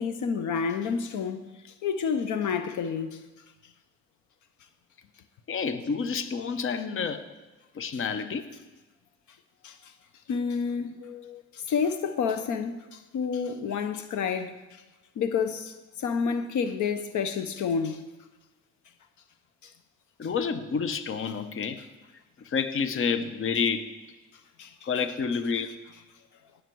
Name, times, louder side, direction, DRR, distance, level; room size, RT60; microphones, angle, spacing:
voice 1, 0.0-1.4 1.8-3.2 9.6-9.7 10.3-11.0 11.5-14.5 15.2-18.0 24.6-24.7, left 6 dB, 75° left, 0.9 m, -29 dB
voice 2, 5.5-7.2 7.7-8.5 11.0-11.4 20.2-21.8 22.5-23.9 24.8-25.7, left 5 dB, 45° left, 0.9 m, -29 dB
18.0 x 6.6 x 4.6 m
cardioid pair, 90°, 30 cm